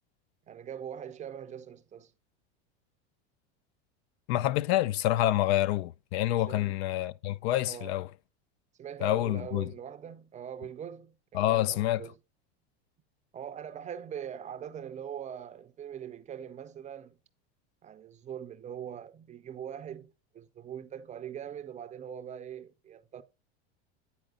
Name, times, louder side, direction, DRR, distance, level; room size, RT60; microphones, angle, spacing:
voice 1, 0.5-2.1 6.5-6.8 7.7-8.0 8.8-12.1 13.3-17.2 17.8-23.2, right 9 dB, 20° right, 0.5 m, -42 dB
voice 2, 4.3-8.1 9.0-9.7 11.3-12.0, left 14 dB, 75° left, 0.5 m, -27 dB
9.2 x 4.2 x 3.7 m
supercardioid pair, 125°, 32 cm